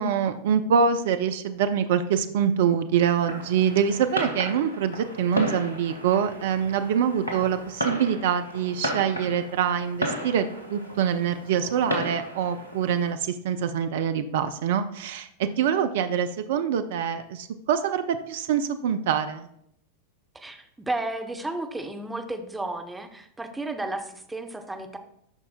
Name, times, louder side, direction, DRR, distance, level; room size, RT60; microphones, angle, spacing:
voice 1, 0.0-19.5, right 7 dB, 55° right, 10 dB, 0.4 m, -25 dB
Fireworks, 3.1-13.1, equal, 80° left, 1.2 m, -34 dB
voice 2, 20.3-25.0, right 2 dB, 10° right, 5 dB, 0.7 m, -33 dB
10.5 x 5.4 x 2.2 m, 0.74 s
figure-of-eight pair, 90°, 0 cm